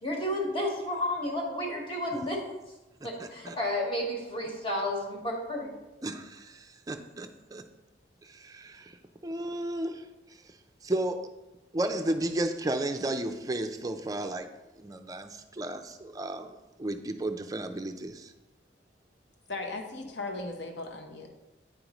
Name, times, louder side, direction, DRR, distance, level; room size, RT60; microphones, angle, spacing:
voice 1, 0.0-2.4 3.0-5.7, left 1 dB, 30° left, -1 dB, 1.4 m, -31 dB
voice 2, 3.0-3.6 6.0-7.6 8.2-8.9 9.2-10.1 10.8-11.3 11.7-14.5 14.8-18.3, right 1 dB, 20° right, 6 dB, 0.4 m, -33 dB
voice 3, 19.5-21.3, left 2 dB, 65° left, 4 dB, 0.9 m, -37 dB
9.3 x 5.2 x 3.0 m, 1.1 s
head